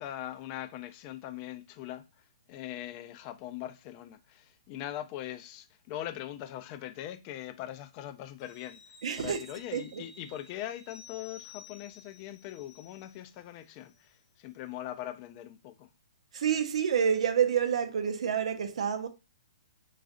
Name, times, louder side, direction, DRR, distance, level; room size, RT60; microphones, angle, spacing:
voice 1, 0.0-2.1 2.5-8.8 9.2-15.9, left 12 dB, 35° left, 0.4 m, -41 dB
sound 1, 8.4-13.5 13.8-14.0, left 4 dB, 75° left, 0.8 m, -54 dB
voice 2, 9.0-9.4 9.7-10.0 16.3-19.1, right 7 dB, 70° right, 0.6 m, -28 dB
3.9 x 2.4 x 2.4 m
hypercardioid pair, 135°, 3 cm